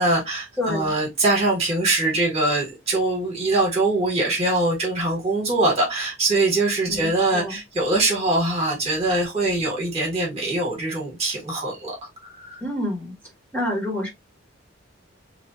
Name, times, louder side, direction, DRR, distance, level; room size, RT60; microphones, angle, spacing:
voice 1, 0.0-12.0 12.2-12.6, right 2 dB, 30° right, 1.5 m, -23 dB
voice 2, 0.6-0.9 6.9-7.6 12.6-13.1 13.5-14.1, left 1 dB, 10° left, 1.4 m, -28 dB
3.1 x 2.7 x 2.7 m
head